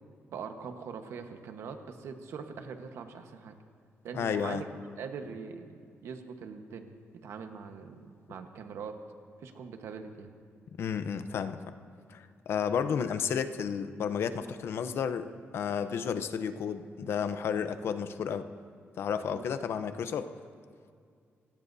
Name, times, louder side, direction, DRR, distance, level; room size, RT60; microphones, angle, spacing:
voice 1, 0.3-3.6 4.0-4.6 5.0-7.0 7.2-9.0 9.4-10.3 19.3-19.5, right 6 dB, 80° right, 6 dB, 1.2 m, -42 dB
voice 2, 4.1-4.6 10.8-11.7 12.1-18.5 19.0-20.3, left 7 dB, 60° left, 10 dB, 0.7 m, -32 dB
27.0 x 17.5 x 2.7 m, 2.3 s
wide cardioid pair, 175°, 5 cm